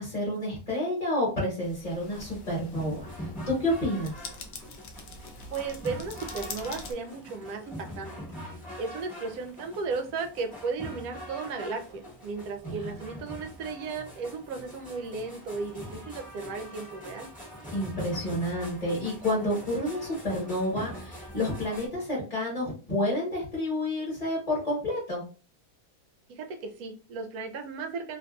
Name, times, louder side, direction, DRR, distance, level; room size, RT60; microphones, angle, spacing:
voice 1, 0.0-4.2 12.6-12.9 17.7-25.2, left 1 dB, 25° left, -6 dB, 1.3 m, -30 dB
sound 1, 1.6-6.9, left 4 dB, 90° left, 0.5 m, -44 dB
sound 2, 2.0-21.9, equal, 5° left, 1.0 m, -43 dB
voice 2, 5.5-8.2 8.8-17.3 26.3-28.2, right 4 dB, 75° right, 6 dB, 1.0 m, -35 dB
2.8 x 2.6 x 2.2 m, 0.36 s
omnidirectional pair, 1.7 m